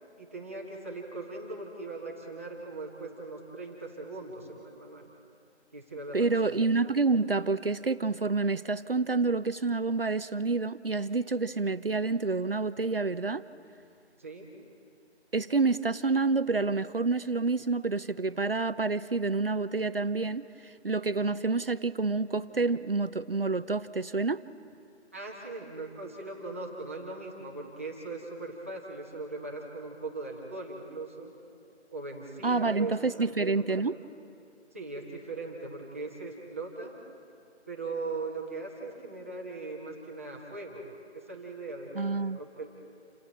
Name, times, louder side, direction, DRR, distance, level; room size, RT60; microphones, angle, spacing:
voice 1, 0.2-5.1 5.7-6.6 14.2-14.5 25.1-31.3 31.9-34.0 34.7-37.0 37.7-40.8 41.1-42.7, right 3 dB, 10° right, -3 dB, 1.3 m, -40 dB
voice 2, 6.1-13.4 15.3-24.4 32.4-33.9 41.9-42.4, right 3 dB, 55° right, 13 dB, 0.6 m, -28 dB
28.5 x 26.5 x 4.3 m, 2.5 s
figure-of-eight pair, 170°, 35 cm